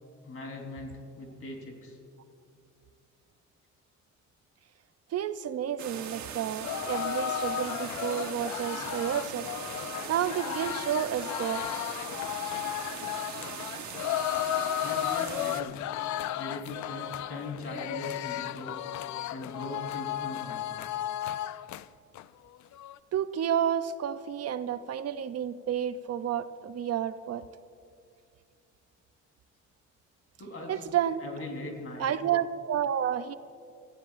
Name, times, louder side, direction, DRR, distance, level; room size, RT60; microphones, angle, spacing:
voice 1, 0.2-2.0 14.8-15.7 16.3-18.8 19.3-20.6 30.4-30.9 31.2-32.1, left 2 dB, 50° left, 1 dB, 3.9 m, -40 dB
voice 2, 5.1-9.4 10.1-11.7 23.1-27.4 30.7-31.2 32.0-33.3, right 9 dB, 55° right, 12 dB, 0.6 m, -30 dB
sound 1, 5.8-15.6, right 8 dB, 70° right, 1.3 m, -40 dB
sound 2, 6.6-21.8 22.2-22.3 22.6-23.0, left 12 dB, 70° left, 0.5 m, -34 dB
25.0 x 15.0 x 2.5 m, 2.3 s
cardioid pair, 90°, 30 cm